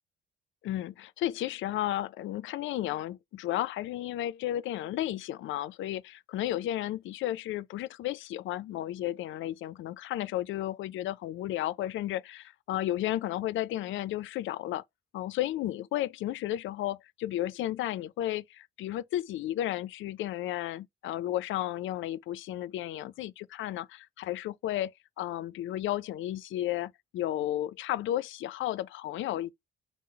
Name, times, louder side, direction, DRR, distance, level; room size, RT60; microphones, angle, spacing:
voice 1, 0.6-14.8 15.1-24.9 25.2-29.5, left 13 dB, 80° left, 0.5 m, -33 dB
3.8 x 2.0 x 4.3 m
cardioid pair, 90°, 20 cm